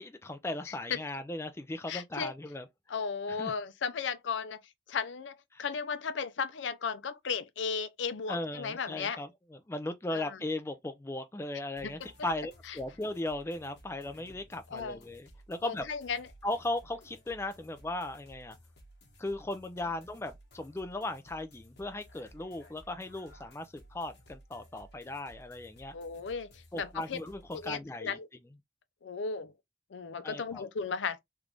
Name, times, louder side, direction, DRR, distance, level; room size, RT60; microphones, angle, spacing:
voice 1, 0.0-2.7 3.4-3.5 5.5-5.6 8.3-9.3 9.7-15.8 16.4-18.5 19.2-25.9 26.7-28.2 30.2-30.6, left 2 dB, 15° left, 0.3 m, -37 dB
voice 2, 0.7-1.0 1.9-2.3 2.9-9.2 10.1-10.4 11.8-12.1 12.6-12.8 14.7-15.0 15.6-16.3 25.9-27.2 27.5-28.3 29.0-29.5 29.9-31.2, left 5 dB, 80° left, 0.5 m, -35 dB
sound 1, 11.8-27.8, equal, 60° left, 1.1 m, -57 dB
3.4 x 2.5 x 3.0 m
head